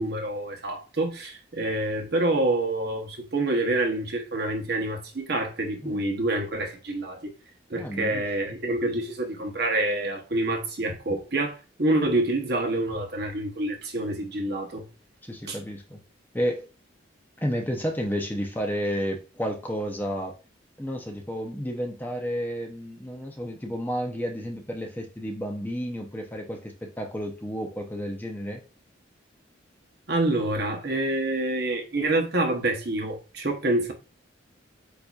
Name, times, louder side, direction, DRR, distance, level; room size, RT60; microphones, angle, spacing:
voice 1, 0.0-7.3 7.7-14.8 15.5-15.6 30.1-33.9, right 2 dB, 55° right, 1.0 m, -27 dB
voice 2, 7.8-8.2 15.2-16.0 16.3-16.6 17.4-20.3 20.8-28.6, equal, 10° left, 0.6 m, -31 dB
8.0 x 2.8 x 2.4 m
head